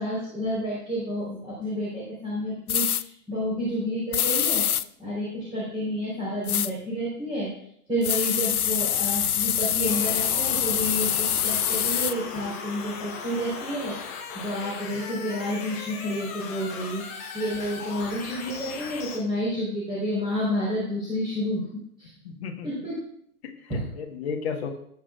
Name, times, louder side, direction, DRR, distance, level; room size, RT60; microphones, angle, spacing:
voice 1, 0.0-4.6 5.0-7.5 7.9-21.6 22.0-22.1 22.6-23.0 23.7-23.8, equal, 10° right, -7 dB, 4.2 m, -30 dB
sound 1, 2.7-3.0 4.1-4.8 6.5-6.7 8.0-12.1, left 10 dB, 70° left, 0.6 m, -25 dB
sound 2, 9.9-19.2, left 5 dB, 10° left, 0.5 m, -38 dB
voice 2, 22.2-22.7 23.4-24.7, left 6 dB, 45° left, 2 dB, 1.5 m, -33 dB
18.5 x 7.5 x 2.5 m, 0.68 s
figure-of-eight pair, 115°, 46 cm